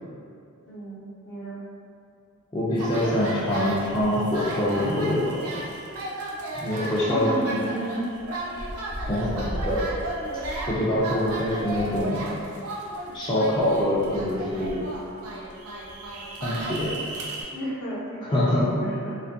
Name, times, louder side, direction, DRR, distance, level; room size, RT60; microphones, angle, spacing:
voice 1, 0.7-1.6 6.8-8.1 17.5-19.1, right 1 dB, 60° left, -6 dB, 0.7 m, -32 dB
voice 2, 2.5-5.4 6.6-7.7 9.1-9.8 10.7-12.2 13.1-14.8 16.4-16.9 18.2-18.7, left 1 dB, 20° left, -9 dB, 0.3 m, -25 dB
sound 1, 2.8-17.4, right 1 dB, 75° right, 0.4 m, -34 dB
2.5 x 2.3 x 2.6 m, 2.3 s
head